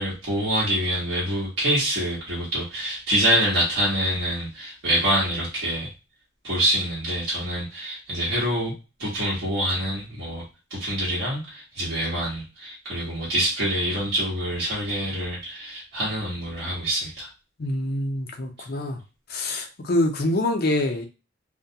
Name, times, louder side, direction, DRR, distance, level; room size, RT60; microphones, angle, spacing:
voice 1, 0.0-5.9 6.4-8.7 9.0-10.4 10.7-17.3, equal, 55° right, -7 dB, 1.0 m, -26 dB
voice 2, 17.6-19.0 19.3-21.1, left 1 dB, 50° left, 3 dB, 0.5 m, -25 dB
2.3 x 2.1 x 2.7 m, 0.30 s
head